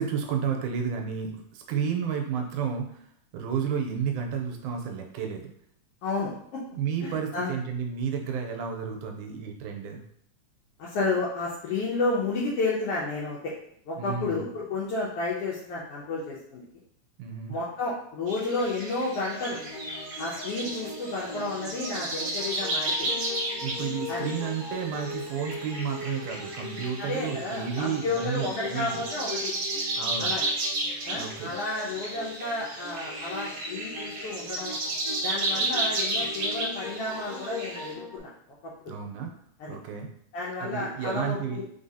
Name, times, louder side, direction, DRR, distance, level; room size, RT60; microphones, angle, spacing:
voice 1, 0.0-2.9 3.3-5.5 6.7-10.0 14.0-14.4 17.2-17.6 23.5-29.0 30.0-30.3 31.1-31.5 38.9-39.3 39.7-40.1 40.6-41.6, right 7 dB, 85° right, 2 dB, 2.0 m, -31 dB
voice 2, 6.0-6.6 7.0-7.6 10.8-13.5 13.9-16.6 17.5-19.6 20.2-23.1 24.1-24.3 27.0-29.5 30.2-30.4 31.0-34.8 35.2-38.3 38.8-38.9 39.6-39.8 40.3-41.6, left 3 dB, 85° left, -5 dB, 1.3 m, -31 dB
sound 1, 18.3-37.9, right 2 dB, 65° right, 1.5 m, -33 dB
sound 2, 19.3-38.2, left 3 dB, 60° left, 0.9 m, -40 dB
3.9 x 3.7 x 2.7 m, 0.68 s
omnidirectional pair, 3.5 m